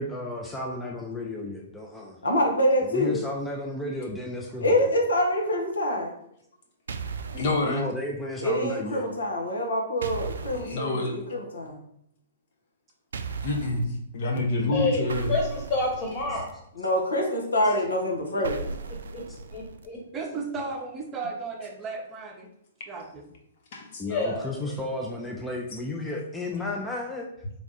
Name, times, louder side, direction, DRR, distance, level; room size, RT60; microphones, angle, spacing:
voice 1, 0.0-2.2 2.8-4.9 7.6-9.0 14.6-14.8 19.3-19.4 24.0-27.3, left 1 dB, 10° left, -1 dB, 0.5 m, -33 dB
voice 2, 2.2-3.1 4.6-6.1 8.4-11.8 16.8-18.6, equal, 80° left, 0 dB, 0.9 m, -25 dB
sound 1, 6.9-7.6 10.0-10.7 13.1-13.8 15.1-16.5 18.4-19.9, right 4 dB, 75° right, 0.3 m, -36 dB
voice 3, 7.3-7.8 10.5-11.1 13.4-13.9 14.1-15.3 23.7-24.0, left 2 dB, 55° left, 1 dB, 0.8 m, -27 dB
voice 4, 14.7-16.6 18.4-18.5 18.9-20.0 24.0-24.9, left 2 dB, 35° left, -1 dB, 1.3 m, -30 dB
voice 5, 20.1-22.5 22.9-23.2, right 4 dB, 25° right, 1 dB, 0.7 m, -35 dB
3.4 x 2.4 x 4.0 m, 0.71 s
figure-of-eight pair, 115°, 0 cm